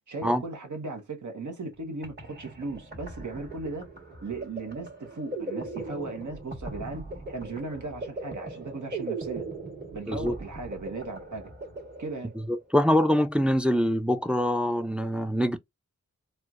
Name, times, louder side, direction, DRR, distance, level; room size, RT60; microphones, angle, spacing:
voice 1, 0.1-3.9 4.2-9.5 9.9-11.5 12.0-12.3, right 3 dB, 75° right, 0.9 m, -37 dB
sound 1, 1.7-12.6, right 2 dB, 35° right, 1.3 m, -39 dB
voice 2, 12.5-15.6, equal, 5° right, 0.3 m, -24 dB
4.3 x 2.1 x 2.4 m
wide cardioid pair, 60°, 30 cm